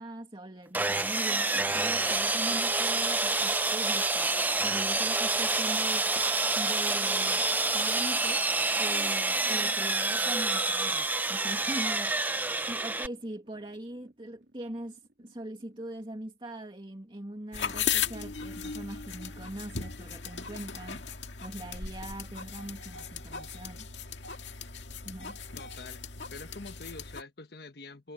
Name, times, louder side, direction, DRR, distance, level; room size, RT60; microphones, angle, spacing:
voice 1, 0.0-6.1 6.6-7.5 7.7-8.5 8.8-21.0 21.4-23.9 25.0-25.4, right 1 dB, 30° right, 2.4 m, -41 dB
Sawing, 0.7-13.1, right 3 dB, 10° right, 0.6 m, -28 dB
sound 1, 6.2-16.1 16.7-16.8, right 2 dB, 65° right, 3.7 m, -59 dB
sound 2, 17.5-27.2, left 7 dB, 85° left, 1.9 m, -37 dB
voice 2, 25.5-28.1, left 3 dB, 60° left, 1.3 m, -46 dB
head